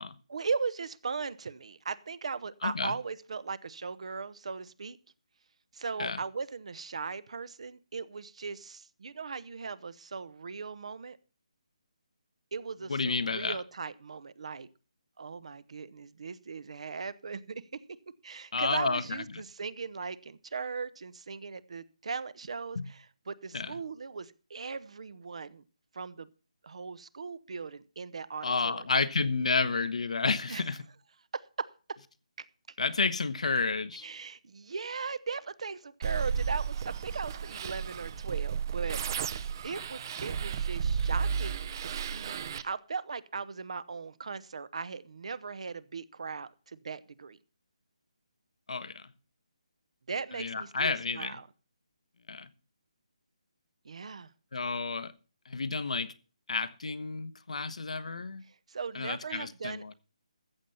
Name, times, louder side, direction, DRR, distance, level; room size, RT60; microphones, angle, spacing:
voice 1, 0.3-5.0 5.7-11.2 12.5-14.7 15.2-17.8 18.2-25.6 25.9-26.3 26.6-28.9 30.5-30.6 31.3-32.0 32.4-32.5 34.0-39.0 39.6-47.4 50.1-51.5 53.8-54.3 58.5-59.9, right 5 dB, 60° right, 0.9 m, -38 dB
voice 2, 2.6-2.9 6.0-6.2 12.9-13.6 18.5-19.2 22.7-22.9 23.5-23.7 28.4-30.8 32.8-34.1 48.7-49.0 50.4-51.3 52.3-52.5 54.5-55.1 55.5-56.1 56.5-58.4 58.9-59.9, left 4 dB, 70° left, 1.1 m, -31 dB
sound 1, 36.0-42.6, right 7 dB, 30° right, 0.7 m, -33 dB
14.5 x 7.7 x 5.6 m
hypercardioid pair, 165°, 4 cm